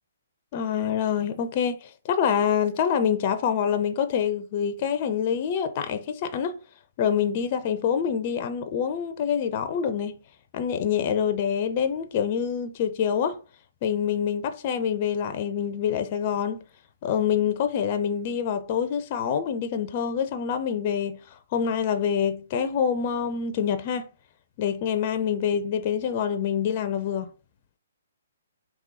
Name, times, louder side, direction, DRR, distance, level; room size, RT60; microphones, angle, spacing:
voice 1, 0.5-6.6 7.0-10.2 10.5-13.4 13.8-16.6 17.0-24.1 24.6-27.3, left 8 dB, 40° left, 0.4 m, -26 dB
3.7 x 2.9 x 4.0 m
figure-of-eight pair, 130°, 0 cm